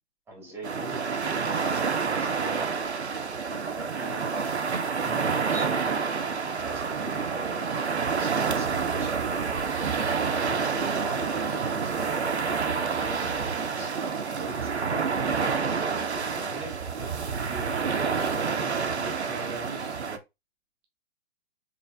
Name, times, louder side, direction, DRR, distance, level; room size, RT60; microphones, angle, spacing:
voice 1, 0.3-2.8 3.5-4.7 5.4-5.9 6.2-7.7 8.2-9.4 10.2-17.1 17.9-18.4, right 1 dB, 5° right, 1.8 m, -41 dB
sound 1, 0.6-20.2, right 5 dB, 85° right, 0.7 m, -28 dB
voice 2, 2.3-2.7 5.0-5.3 17.5-20.2, right 4 dB, 25° right, 0.7 m, -39 dB
4.1 x 3.2 x 2.4 m
figure-of-eight pair, 120°, 33 cm